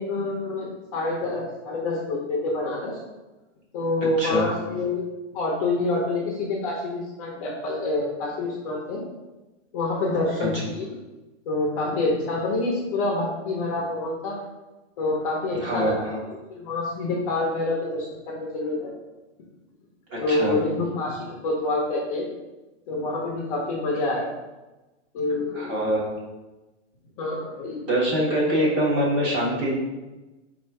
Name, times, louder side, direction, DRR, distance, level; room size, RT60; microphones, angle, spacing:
voice 1, 0.0-3.0 3.7-5.0 5.3-9.0 9.7-10.9 11.5-14.4 15.0-16.0 16.5-18.9 20.2-22.3 22.9-24.3 25.1-25.6 27.2-27.9 28.6-28.7, left 2 dB, 30° left, -2 dB, 0.7 m, -27 dB
voice 2, 15.6-16.2 20.1-20.6 24.0-24.1 25.5-26.0 27.9-29.8, right 1 dB, 25° right, -5 dB, 1.3 m, -24 dB
4.2 x 2.5 x 4.6 m, 1.1 s
hypercardioid pair, 160°, 36 cm